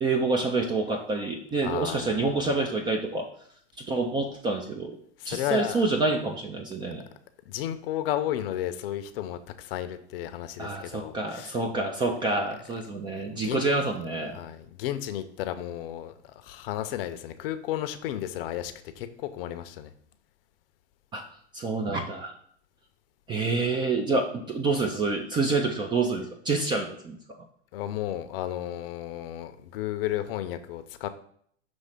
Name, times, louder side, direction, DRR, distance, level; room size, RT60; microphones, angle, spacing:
voice 1, 0.0-3.3 3.8-5.0 5.2-7.0 10.6-14.4 21.1-21.2 21.5-22.3 23.3-27.4, right 3 dB, 15° right, 4 dB, 0.3 m, -27 dB
voice 2, 1.6-2.2 5.2-5.8 7.5-11.6 13.1-13.7 14.3-19.9 27.7-31.1, left 12 dB, 55° left, 10 dB, 0.7 m, -33 dB
6.3 x 3.2 x 5.6 m, 0.63 s
hypercardioid pair, 125°, 35 cm